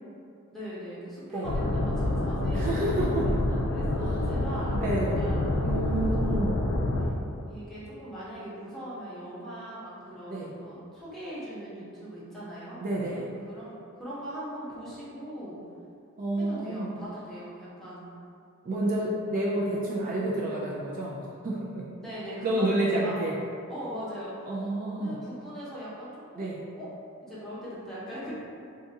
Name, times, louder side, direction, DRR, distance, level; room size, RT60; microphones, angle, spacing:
voice 1, 0.5-3.3 3.6-5.7 6.3-7.1 7.5-13.0 13.5-15.6 16.4-18.1 18.6-18.8 22.0-23.2 23.7-26.5 26.8-26.9 27.2-28.3, equal, ahead, -11 dB, 0.9 m, -40 dB
sound 1, 1.4-7.1, left 1 dB, 75° left, 0.4 m, -27 dB
voice 2, 2.5-3.2 4.6-5.2 5.6-6.6 10.3-10.5 12.8-13.3 16.2-16.9 18.6-21.9 22.4-23.3 24.5-25.2 26.4-26.6, right 1 dB, 40° right, -5 dB, 0.3 m, -29 dB
2.6 x 2.4 x 3.9 m, 2.5 s
head